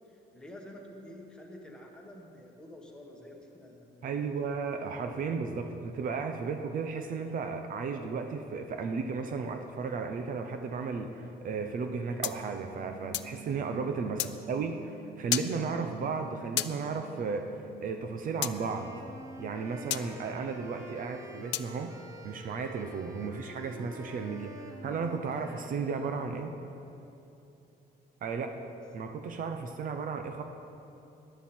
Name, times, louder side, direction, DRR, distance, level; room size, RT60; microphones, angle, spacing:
voice 1, 0.1-4.5 14.1-14.5 28.3-28.8, left 1 dB, 5° left, -1 dB, 1.6 m, -49 dB
voice 2, 4.0-18.9 19.4-21.9 22.2-26.5 28.2-28.5 28.9-30.4, right 5 dB, 50° right, 6 dB, 0.8 m, -34 dB
sound 1, 12.2-13.4 14.2-14.3 15.3-15.5 16.6-16.7 18.4-18.6 19.9-20.1 21.5-21.7, left 14 dB, 80° left, 0.5 m, -32 dB
sound 2, 12.4-18.6, right 8 dB, 80° right, 1.1 m, -50 dB
Wind instrument woodwind instrument, 18.5-26.6, right 1 dB, 15° right, 1.0 m, -48 dB
18.0 x 11.5 x 4.4 m, 2.8 s
cardioid pair, 165°, 18 cm